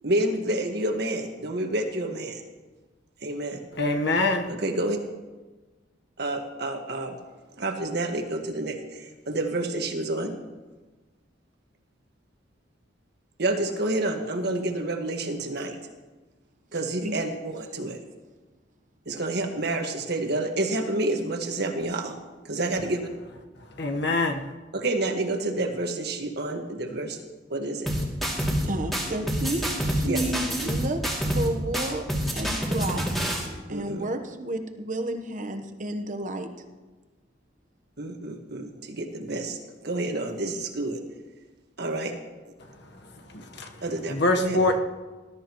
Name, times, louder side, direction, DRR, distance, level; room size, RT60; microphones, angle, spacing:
voice 1, 0.0-2.4 3.2-3.6 4.5-5.0 6.2-7.1 7.6-10.3 13.4-15.7 16.7-18.0 19.0-22.1 22.4-23.0 24.7-27.2 27.5-27.9 30.0-30.2 33.7-34.1 38.0-41.0 41.8-42.1 43.8-44.6, right 2 dB, 55° right, 3 dB, 1.6 m, -29 dB
voice 2, 3.8-4.5 23.8-24.4 44.1-44.8, left 2 dB, 60° left, 4 dB, 1.2 m, -23 dB
sound 1, 27.9-28.7 28.9-31.5 31.7-33.5, equal, ahead, 2.5 m, -27 dB
voice 3, 28.6-31.0 31.3-32.0 32.3-33.0 33.7-36.5, right 1 dB, 40° right, 7 dB, 1.0 m, -31 dB
20.0 x 12.5 x 3.1 m, 1.3 s
head